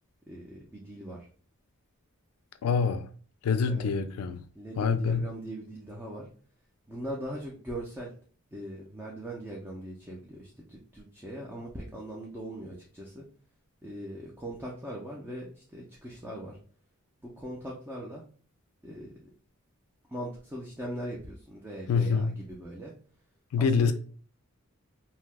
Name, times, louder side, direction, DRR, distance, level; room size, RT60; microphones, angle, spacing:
voice 1, 0.3-1.3 3.7-3.9 4.6-6.3 6.9-8.1 8.5-13.2 13.8-16.6 17.2-18.2 18.8-19.3 20.1-22.9 23.6-23.9, right 1 dB, 10° right, 0.4 m, -40 dB
voice 2, 2.6-3.1 3.4-4.4 4.8-5.3 21.9-22.4 23.5-23.9, left 5 dB, 85° left, 0.4 m, -25 dB
2.8 x 2.2 x 3.3 m
head